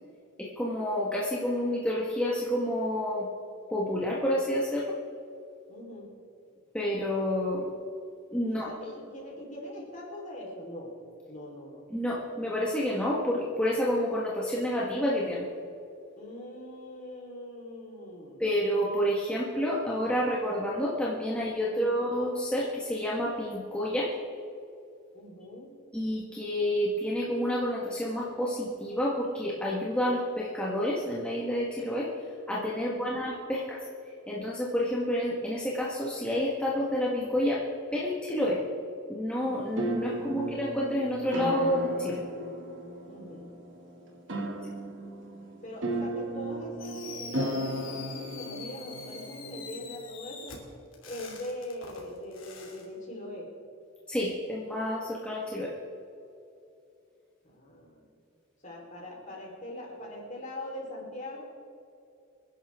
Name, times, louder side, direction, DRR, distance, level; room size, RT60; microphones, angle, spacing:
voice 1, 0.4-3.3 3.7-4.9 6.7-7.7 8.3-8.7 11.9-15.5 18.4-24.1 25.9-32.1 32.5-33.8 34.3-37.6 37.9-38.6 39.1-42.2 54.1-55.7, equal, 5° left, -6 dB, 1.6 m, -29 dB
voice 2, 5.7-6.1 8.5-10.9 11.3-11.8 16.2-18.4 21.7-22.0 25.1-25.7 32.8-33.2 40.1-40.5 43.0-43.5 45.6-47.6 47.8-50.5 51.0-53.5 57.4-58.1 58.6-61.4, left 1 dB, 40° left, -2 dB, 4.1 m, -42 dB
sound 1, 39.4-50.0, right 1 dB, 65° right, 2.5 m, -35 dB
Fireworks, 46.8-52.8, left 5 dB, 75° left, 2.8 m, -45 dB
26.0 x 11.0 x 3.7 m, 2.7 s
head